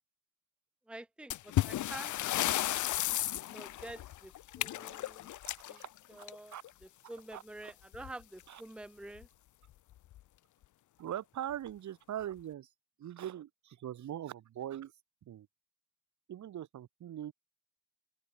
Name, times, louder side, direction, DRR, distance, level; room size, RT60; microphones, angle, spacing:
voice 1, 0.9-2.1 2.7-2.8 3.5-5.3 5.7-5.8 6.1-6.5 7.1-9.3, right 2 dB, 5° right, 0.9 m, -48 dB
sound 1, 1.3-6.7 7.9-8.1 8.4-8.5 9.2-9.3 9.9-10.2, left 14 dB, 75° left, 1.5 m, -34 dB
voice 2, 5.4-6.2 6.5-6.6 7.0-7.7 8.5-8.6 11.0-12.7 13.0-14.9 15.3-15.5 16.3-17.3, right 11 dB, 70° right, 6.1 m, -42 dB
cardioid pair, 90°, 30 cm